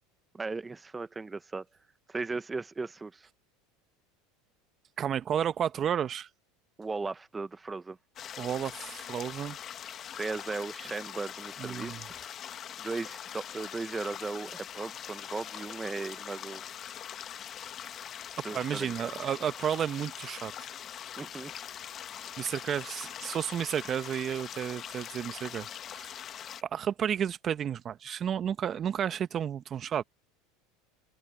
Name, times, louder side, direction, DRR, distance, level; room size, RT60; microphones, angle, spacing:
voice 1, 0.3-1.7 2.1-3.3 6.8-8.0 10.1-12.1 12.8-16.6 18.4-19.1 21.2-21.5 22.2-22.3, right 3 dB, 15° right, 1.3 m, -37 dB
voice 2, 5.0-6.3 8.4-9.6 11.6-12.0 18.5-20.5 22.4-26.1 26.6-30.0, right 9 dB, 35° right, 1.3 m, -32 dB
sound 1, 8.2-26.6, left 9 dB, 40° left, 1.5 m, -42 dB
hypercardioid pair, 100°, 0 cm